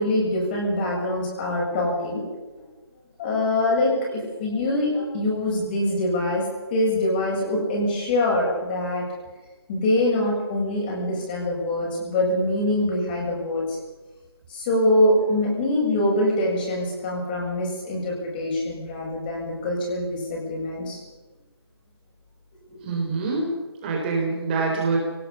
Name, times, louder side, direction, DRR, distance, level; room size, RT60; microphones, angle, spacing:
voice 1, 0.0-2.2 2.6-2.7 3.2-6.4 6.7-9.0 9.7-13.8 14.5-21.0 22.7-22.8, left 1 dB, 20° left, -2 dB, 7.3 m, -24 dB
voice 2, 22.8-25.0, right 3 dB, 20° right, -1 dB, 4.0 m, -25 dB
24.0 x 18.5 x 7.1 m, 1.2 s
figure-of-eight pair, 165°, 14 cm